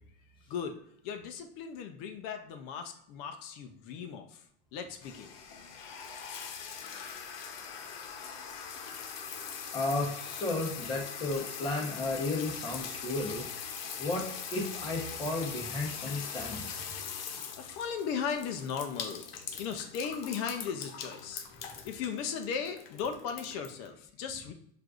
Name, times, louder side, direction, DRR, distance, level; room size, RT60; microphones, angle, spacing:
voice 1, 0.5-4.4 4.7-5.3 17.3-19.3 19.6-21.5 21.8-24.5, left 7 dB, 35° left, 6 dB, 0.4 m, -37 dB
sound 1, 5.0-23.9, left 7 dB, 90° left, 0.7 m, -42 dB
voice 2, 9.7-13.5 14.0-16.8, left 2 dB, 15° left, -1 dB, 0.8 m, -33 dB
6.2 x 2.5 x 2.3 m, 0.67 s
supercardioid pair, 160°, 29 cm